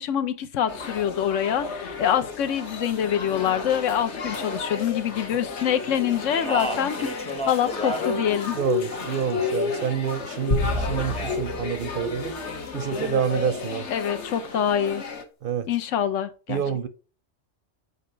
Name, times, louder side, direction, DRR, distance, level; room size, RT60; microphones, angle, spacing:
voice 1, 0.0-8.6 13.9-15.0 15.7-16.6, left 9 dB, 85° left, 1.1 m, -25 dB
sound 1, 0.7-15.2, left 5 dB, 70° left, 1.4 m, -32 dB
Speech, 6.2-8.2 8.4-9.3 10.8-11.4, equal, 5° left, 0.6 m, -32 dB
voice 2, 8.5-12.4 12.7-13.9 15.4-15.7 16.5-16.9, right 8 dB, 60° right, 0.6 m, -28 dB
sound 2, 10.5-13.0, left 1 dB, 40° left, 1.0 m, -30 dB
5.4 x 4.8 x 4.3 m
omnidirectional pair, 1.2 m